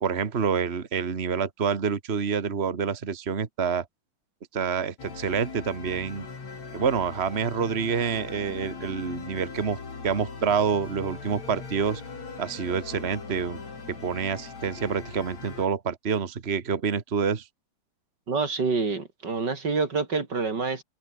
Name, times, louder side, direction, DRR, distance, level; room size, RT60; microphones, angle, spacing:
voice 1, 0.0-3.8 4.5-6.2 6.7-9.8 10.0-12.0 12.4-13.6 13.9-17.5, right 6 dB, 65° right, 0.6 m, -27 dB
sound 1, 5.0-15.7, left 4 dB, 55° left, 6.0 m, -40 dB
voice 2, 18.3-20.8, right 4 dB, 30° right, 3.7 m, -27 dB
omnidirectional pair, 3.8 m